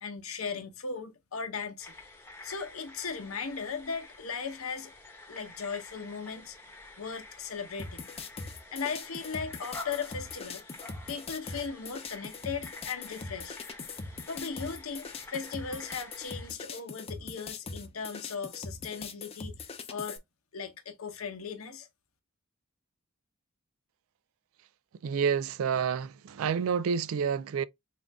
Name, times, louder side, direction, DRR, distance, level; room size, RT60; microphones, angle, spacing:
voice 1, 0.0-2.0 2.4-4.9 5.3-6.6 7.0-8.1 8.7-10.6 11.1-13.6 14.3-20.2 20.5-21.9, left 5 dB, 75° left, 0.9 m, -37 dB
sound 1, 1.8-16.5, left 2 dB, 10° left, 0.9 m, -49 dB
sound 2, 7.8-20.2, left 4 dB, 30° left, 0.5 m, -42 dB
voice 2, 25.0-27.6, right 6 dB, 75° right, 0.3 m, -29 dB
3.8 x 2.5 x 3.4 m
head